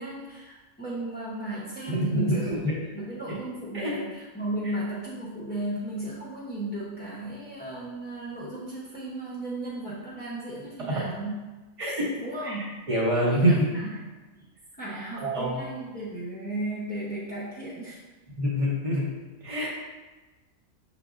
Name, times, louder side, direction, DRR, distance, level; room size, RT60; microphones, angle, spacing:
voice 1, 0.0-2.6 2.9-11.4 12.2-12.8 13.1-14.0 14.3-14.5 14.8-18.0, right 1 dB, 15° left, -9 dB, 0.4 m, -35 dB
voice 2, 1.9-2.7 3.7-3.9 11.8-12.1 12.4-13.7 15.1-15.6 18.4-19.1 19.4-19.7, equal, 35° right, -7 dB, 0.6 m, -25 dB
5.9 x 3.4 x 2.4 m, 1.2 s
omnidirectional pair, 1.4 m